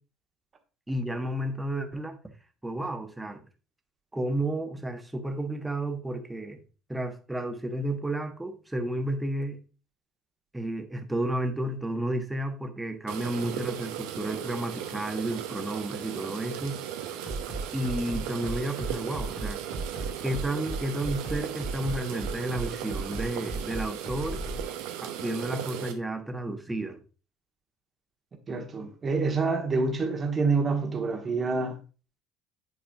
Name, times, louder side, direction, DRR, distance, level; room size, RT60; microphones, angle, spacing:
voice 1, 0.9-2.2 2.6-3.4 4.1-6.6 6.9-9.6 10.5-16.8 17.7-19.6 20.2-24.4 25.0-27.0, right 1 dB, 10° right, 1.3 m, -32 dB
sound 1, 13.1-25.9, right 10 dB, 65° right, 0.8 m, -37 dB
Bass drum, 17.3-24.6, right 2 dB, 30° left, 2.2 m, -34 dB
voice 2, 28.5-31.8, right 4 dB, 30° right, 1.3 m, -27 dB
10.5 x 4.9 x 2.4 m
figure-of-eight pair, 60°, 0 cm